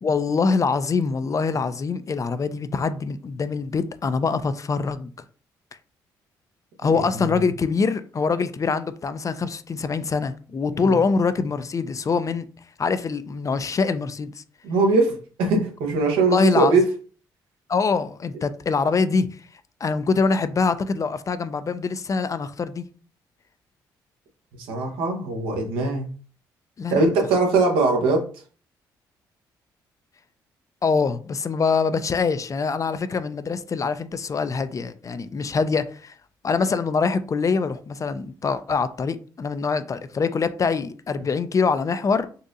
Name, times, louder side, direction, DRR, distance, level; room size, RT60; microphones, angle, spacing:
voice 1, 0.0-5.1 6.8-12.5 12.8-14.4 16.1-16.8 17.7-19.3 19.8-22.8 26.8-27.0 30.8-36.1 36.4-42.3, left 4 dB, 35° left, 0.4 m, -24 dB
voice 2, 14.6-16.8 24.6-26.1 26.9-28.3 41.2-41.3, right 3 dB, 80° right, 0.9 m, -21 dB
4.0 x 2.5 x 2.5 m
supercardioid pair, 55°, 9 cm